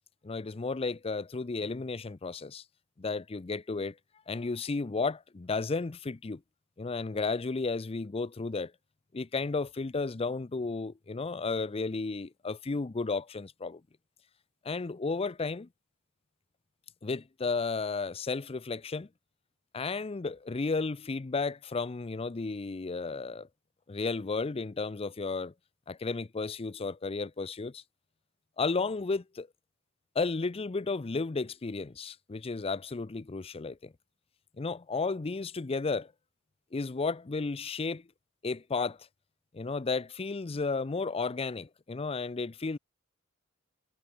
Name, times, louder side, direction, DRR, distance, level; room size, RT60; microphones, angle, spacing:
voice 1, 0.2-2.6 3.0-4.0 4.3-6.4 6.8-8.7 9.1-13.8 14.6-15.7 17.0-19.1 19.7-23.5 23.9-25.5 25.9-27.8 28.6-29.5 30.2-33.9 34.6-36.1 36.7-38.0 38.4-39.0 39.5-42.8, left 4 dB, 30° left, 0.5 m, -33 dB
head